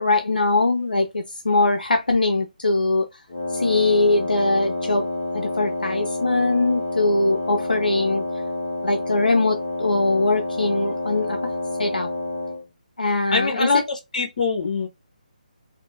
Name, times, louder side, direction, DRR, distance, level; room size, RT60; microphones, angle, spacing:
voice 1, 0.0-3.1 3.5-5.1 5.3-8.2 8.8-11.5 11.8-12.1 13.0-13.7, left 2 dB, 85° left, 0.5 m, -21 dB
Wind instrument woodwind instrument, 3.3-12.6, left 1 dB, 30° left, 1.6 m, -28 dB
voice 2, 13.3-14.9, left 4 dB, 55° left, 1.0 m, -23 dB
3.5 x 2.0 x 2.3 m
figure-of-eight pair, 150°, 5 cm